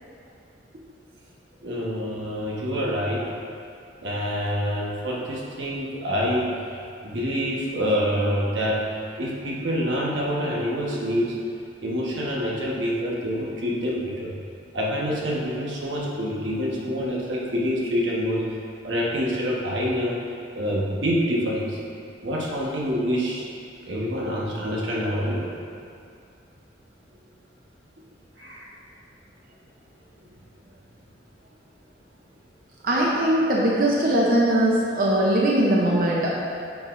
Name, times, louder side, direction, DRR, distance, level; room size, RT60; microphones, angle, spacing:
voice 1, 1.6-3.2 4.0-6.6 7.0-8.9 9.2-11.4 11.8-14.3 14.7-18.4 18.8-20.2 20.5-21.8 22.2-23.5 23.9-25.5 28.4-28.7, equal, 90° right, -4 dB, 1.3 m, -26 dB
voice 2, 32.8-36.4, right 1 dB, 50° right, -4 dB, 0.7 m, -20 dB
9.1 x 5.9 x 2.6 m, 2.4 s
head